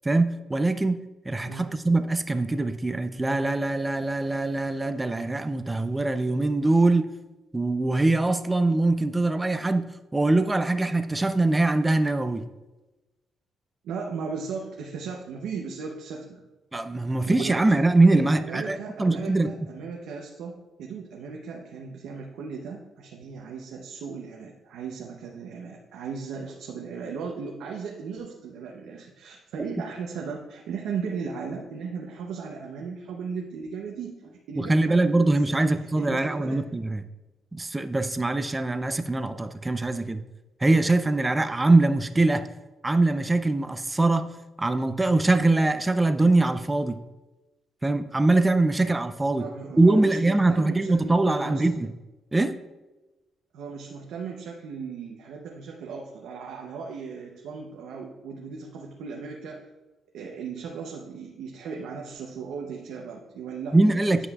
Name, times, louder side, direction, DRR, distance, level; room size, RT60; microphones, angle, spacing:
voice 1, 0.0-1.0 1.3-7.1 7.5-12.4 16.7-19.5 34.6-37.0 37.5-40.2 40.6-42.5 42.8-44.3 44.6-47.0 47.8-49.4 49.8-51.9 52.3-52.5 63.7-64.3, right 2 dB, 15° right, 10 dB, 0.4 m, -23 dB
voice 2, 13.8-16.4 17.1-17.6 18.1-20.5 20.8-36.6 49.4-51.7 53.5-59.6 60.1-64.3, right 5 dB, 85° right, 0 dB, 0.7 m, -37 dB
9.8 x 5.5 x 2.3 m, 1.1 s
cardioid pair, 90°, 0 cm